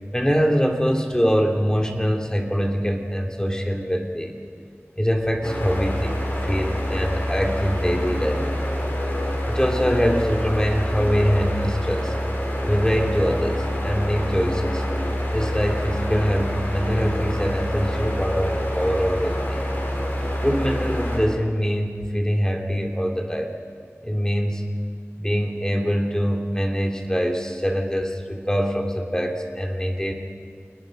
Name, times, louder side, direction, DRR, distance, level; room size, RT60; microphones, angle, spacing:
voice 1, 0.1-4.3 5.0-8.5 9.5-12.1 12.7-14.8 15.3-19.6 20.4-23.5 24.0-24.7 25.2-30.1, equal, 15° left, 2 dB, 2.9 m, -23 dB
sound 1, 5.4-21.2, equal, 45° left, 5.6 m, -26 dB
28.0 x 20.0 x 5.3 m, 2.1 s
wide cardioid pair, 45°, 5 cm